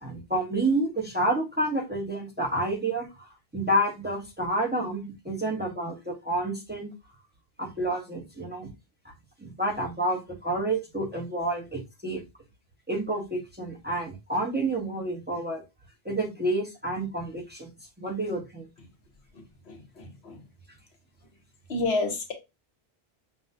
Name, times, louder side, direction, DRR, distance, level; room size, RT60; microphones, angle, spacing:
voice 1, 0.0-3.3 3.5-6.9 7.6-8.7 9.4-12.2 12.9-15.6 16.0-17.7 18.0-18.7, right 1 dB, 10° right, 0.8 m, -29 dB
voice 2, 19.7-20.4 21.7-22.3, left 3 dB, 85° left, 1.2 m, -29 dB
5.6 x 2.3 x 2.6 m
omnidirectional pair, 1.0 m